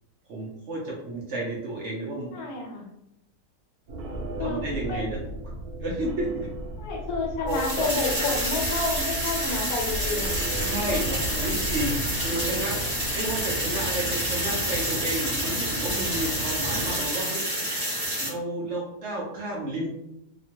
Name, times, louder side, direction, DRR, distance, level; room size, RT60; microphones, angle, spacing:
voice 1, 0.3-2.4 4.4-5.2 5.8-6.5 7.5-7.8 10.6-12.8 13.1-17.4 17.7-17.8 18.2-19.9, right 1 dB, 65° right, -4 dB, 0.7 m, -31 dB
voice 2, 2.3-2.9 4.4-5.0 6.8-10.5 16.0-16.4, left 3 dB, 75° left, 0 dB, 1.2 m, -31 dB
sound 1, 3.9-13.4, right 1 dB, 80° right, 1.1 m, -35 dB
sound 2, 7.5-18.3, equal, 10° right, 0.9 m, -29 dB
sound 3, 10.5-17.0, right 1 dB, 45° left, 0.8 m, -36 dB
2.8 x 2.2 x 2.8 m, 0.83 s
omnidirectional pair, 1.7 m